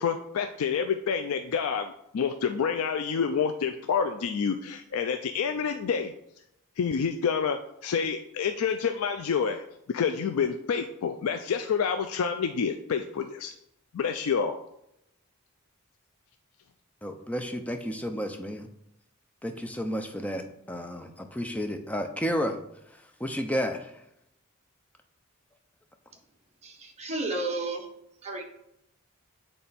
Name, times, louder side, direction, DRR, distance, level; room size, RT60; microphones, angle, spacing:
voice 1, 0.0-6.1 6.8-9.6 9.9-13.5 13.9-14.6, left 6 dB, 75° left, 7 dB, 0.4 m, -28 dB
voice 2, 17.0-18.7 19.4-22.6 23.2-23.9, equal, 5° left, 5 dB, 0.6 m, -31 dB
voice 3, 26.6-27.9 28.2-28.4, right 2 dB, 30° right, 1 dB, 1.1 m, -32 dB
8.6 x 3.4 x 4.1 m, 0.79 s
head